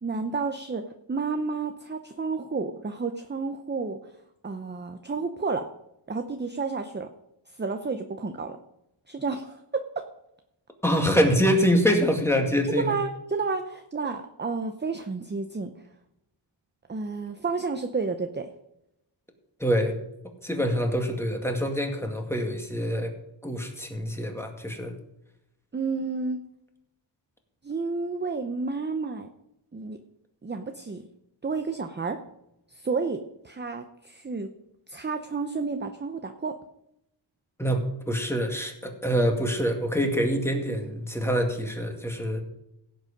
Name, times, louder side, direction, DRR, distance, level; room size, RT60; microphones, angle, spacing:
voice 1, 0.0-4.0 4.4-5.7 6.1-7.1 7.5-8.6 9.1-10.0 12.7-15.7 16.9-18.5 25.7-26.4 27.6-29.3 29.7-30.0 30.4-31.0 31.4-32.2 32.7-33.2 33.4-34.5 34.9-36.6, right 4 dB, 20° right, 6 dB, 0.7 m, -31 dB
voice 2, 10.8-13.0 19.6-19.9 20.4-23.1 23.4-24.9 37.6-42.4, equal, 5° left, 3 dB, 2.1 m, -25 dB
16.5 x 8.1 x 5.2 m, 0.84 s
wide cardioid pair, 135°, 47 cm